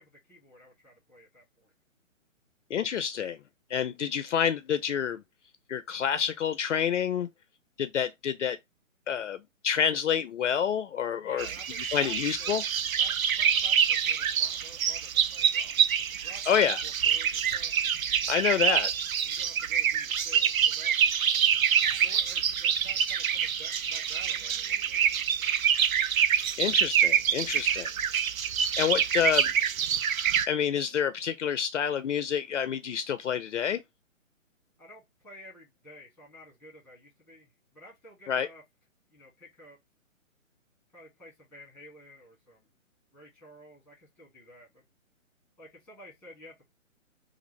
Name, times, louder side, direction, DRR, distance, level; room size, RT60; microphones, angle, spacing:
voice 1, 0.0-1.7 11.2-12.6 13.0-17.7 19.2-20.9 22.0-25.5 34.8-38.6 39.1-39.8 40.9-42.7 43.1-44.8 45.6-46.7, left 1 dB, ahead, 1.6 m, -52 dB
voice 2, 2.7-3.4 3.7-5.2 5.7-7.3 7.8-8.6 9.1-11.5 11.9-12.6 16.5-16.8 18.3-18.9 26.6-27.9 28.8-29.5 30.5-33.8 38.3-38.5, left 8 dB, 65° left, 0.5 m, -28 dB
sound 1, 11.4-30.5, right 8 dB, 85° right, 0.5 m, -26 dB
3.4 x 2.5 x 3.0 m
hypercardioid pair, 145°, 40 cm